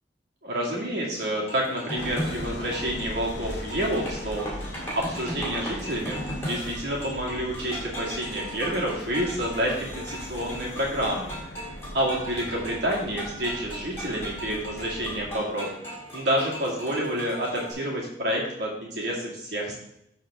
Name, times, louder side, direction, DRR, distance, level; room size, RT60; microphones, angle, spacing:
voice 1, 0.4-11.3 11.9-19.8, equal, 70° right, -3 dB, 2.4 m, -29 dB
sound 1, 1.2-17.7, equal, 15° left, 2.7 m, -38 dB
sound 2, 2.0-15.3, left 1 dB, 75° left, 1.0 m, -40 dB
12.0 x 4.3 x 3.7 m, 0.78 s
head